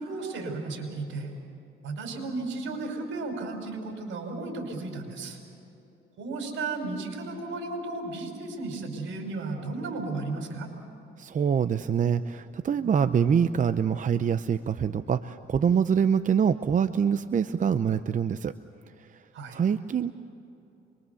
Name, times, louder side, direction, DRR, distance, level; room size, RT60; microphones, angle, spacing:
voice 1, 0.0-1.3 1.8-5.4 6.2-10.7 19.3-19.6, right 3 dB, 80° right, 3 dB, 5.5 m, -34 dB
voice 2, 11.2-18.5 19.5-20.1, right 7 dB, 40° right, 11 dB, 0.7 m, -25 dB
26.0 x 23.0 x 7.1 m, 2.8 s
cardioid pair, 90°, 20 cm